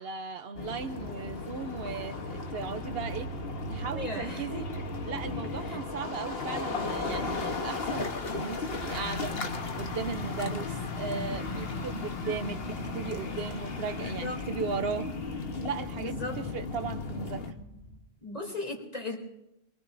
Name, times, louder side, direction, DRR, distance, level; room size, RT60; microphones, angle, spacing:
voice 1, 0.0-3.3 3.7-4.7 5.0-9.4 9.8-15.1 15.6-16.3 16.5-17.4, right 5 dB, 70° right, 10 dB, 1.0 m, -36 dB
sound 1, 0.6-17.5, left 3 dB, 70° left, 1.4 m, -35 dB
voice 2, 3.9-4.7 5.6-5.8 14.0-14.4 16.0-16.4 18.2-19.2, left 2 dB, 40° left, -1 dB, 3.3 m, -37 dB
sound 2, 7.4-18.0, left 2 dB, 85° left, 6.3 m, -48 dB
24.0 x 23.0 x 2.6 m, 0.85 s
omnidirectional pair, 1.1 m